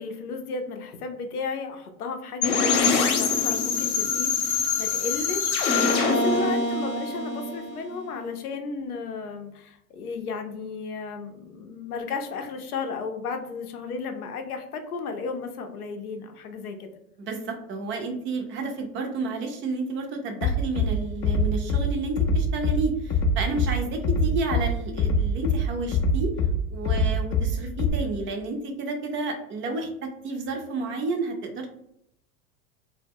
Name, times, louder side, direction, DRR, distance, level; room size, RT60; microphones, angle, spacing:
voice 1, 0.0-16.9, left 4 dB, 85° left, 5 dB, 0.6 m, -34 dB
sound 1, 2.4-8.2, left 4 dB, 50° left, 0.8 m, -24 dB
voice 2, 17.2-26.3 26.7-31.7, right 3 dB, 30° right, 4 dB, 0.5 m, -31 dB
Bass drum, 20.4-20.9 21.2-21.8 22.2-22.8 23.1-23.7 24.0-24.6 25.0-25.6 25.9-26.5 26.9-27.5 27.8-27.9, left 4 dB, 30° left, 0.4 m, -23 dB
2.1 x 2.1 x 3.4 m, 0.76 s
hypercardioid pair, 90°, 44 cm